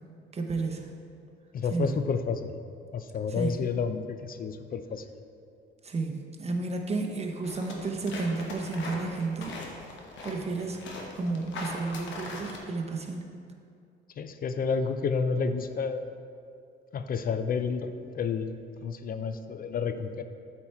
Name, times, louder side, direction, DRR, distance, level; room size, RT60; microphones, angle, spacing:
voice 1, 0.3-0.8 1.7-1.9 3.4-3.6 5.8-9.5 10.2-10.8 11.2-13.3, right 3 dB, 30° right, 3 dB, 0.8 m, -32 dB
voice 2, 1.5-2.5 2.9-5.0 14.2-16.0 16.9-18.6 18.8-20.2, left 5 dB, 45° left, 9 dB, 0.4 m, -30 dB
sound 1, 7.4-12.6, left 2 dB, 70° left, 1.1 m, -40 dB
8.4 x 4.5 x 4.3 m, 2.4 s
cardioid pair, 90°, 20 cm